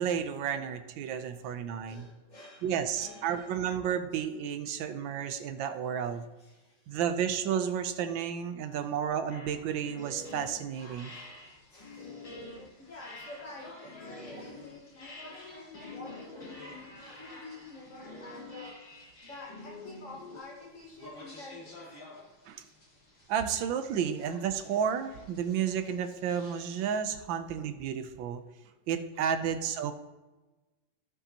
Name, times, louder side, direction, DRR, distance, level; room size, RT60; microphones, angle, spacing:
voice 1, 0.0-2.1 2.6-6.2 6.9-11.1 22.5-22.6 23.3-28.4 28.9-29.9, right 8 dB, 90° right, 9 dB, 1.4 m, -32 dB
voice 2, 1.9-3.5 5.3-5.4 6.4-6.8 11.7-12.1 12.8-16.7 17.2-18.8 19.2-21.8, left 2 dB, 45° left, -1 dB, 1.8 m, -49 dB
sound 1, 9.3-20.4, left 2 dB, 25° left, 0.8 m, -47 dB
sound 2, 10.7-27.0, left 2 dB, 75° left, 3.8 m, -54 dB
16.0 x 5.4 x 2.9 m, 1.2 s
omnidirectional pair, 2.0 m